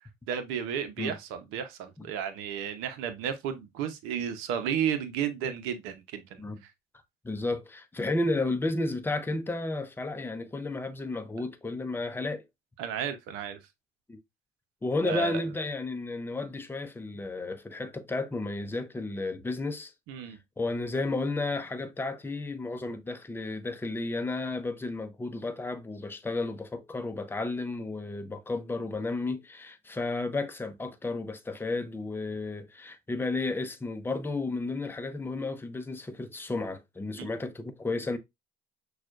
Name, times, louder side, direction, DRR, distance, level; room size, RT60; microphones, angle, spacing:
voice 1, 0.3-6.7 12.8-13.6 15.0-15.4 20.1-20.4 37.2-37.3, right 8 dB, 75° right, 0.8 m, -33 dB
voice 2, 7.2-12.4 14.1-14.2 14.8-19.9 20.6-38.2, left 2 dB, 10° left, 0.6 m, -32 dB
6.0 x 2.4 x 2.4 m
supercardioid pair, 85°, 21 cm